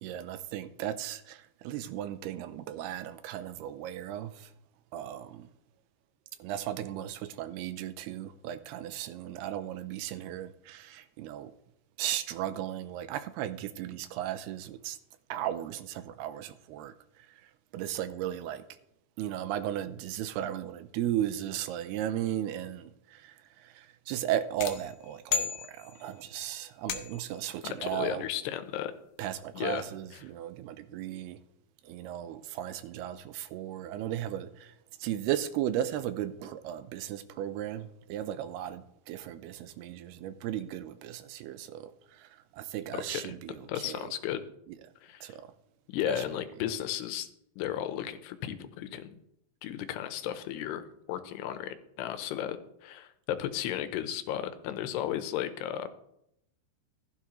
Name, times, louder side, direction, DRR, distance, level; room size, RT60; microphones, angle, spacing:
voice 1, 0.0-4.5 4.9-5.5 6.4-11.5 12.0-15.0 15.3-16.9 17.7-18.6 19.2-28.3 29.2-31.4 31.8-34.7 35.0-44.1 45.2-45.5 46.1-46.2, right 11 dB, 85° right, 2.6 m, -36 dB
sound 1, 24.6-26.2 26.9-27.4, left 7 dB, 70° left, 2.4 m, -34 dB
voice 2, 27.6-28.9 29.5-29.9 30.1-30.2 42.9-43.3 43.6-44.4 45.0-45.4 45.9-47.3 47.6-49.2 49.6-55.9, left 11 dB, 90° left, 2.9 m, -34 dB
15.0 x 10.5 x 3.1 m
omnidirectional pair, 4.7 m